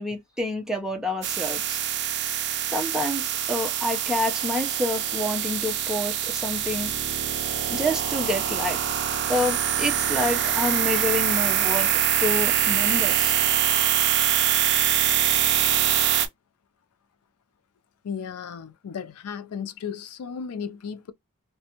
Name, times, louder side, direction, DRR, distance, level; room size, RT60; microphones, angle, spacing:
voice 1, 0.0-1.8 2.7-6.9 7.7-9.0 9.3-11.9 12.2-13.3, left 1 dB, 5° right, 0.6 m, -28 dB
sound 1, 1.2-16.3, right 10 dB, 50° right, 0.5 m, -24 dB
voice 2, 18.0-21.1, left 6 dB, 75° left, 0.4 m, -35 dB
2.5 x 2.2 x 2.8 m
head